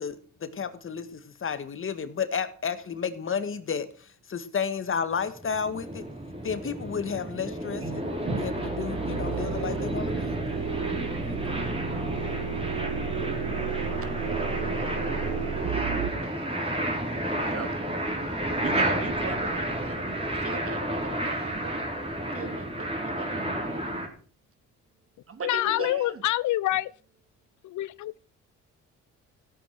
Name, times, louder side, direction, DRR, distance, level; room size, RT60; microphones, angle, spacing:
voice 1, 0.0-6.0 6.4-8.5 8.8-10.4, left 6 dB, 45° left, 1.8 m, -32 dB
sound 1, 5.2-24.1, right 1 dB, 20° right, 4.6 m, -31 dB
voice 2, 7.8-8.6 8.9-9.3 9.8-9.9 10.8-11.2 17.4-17.8 18.2-18.3 18.6-21.9 22.3-23.8 25.3-26.2, right 4 dB, 45° right, 2.9 m, -38 dB
sound 2, 8.1-16.1, right 8 dB, 75° right, 1.6 m, -33 dB
voice 3, 25.4-26.9 27.6-28.1, left 15 dB, 75° left, 0.6 m, -26 dB
14.5 x 8.9 x 6.1 m
cardioid pair, 90°, 30 cm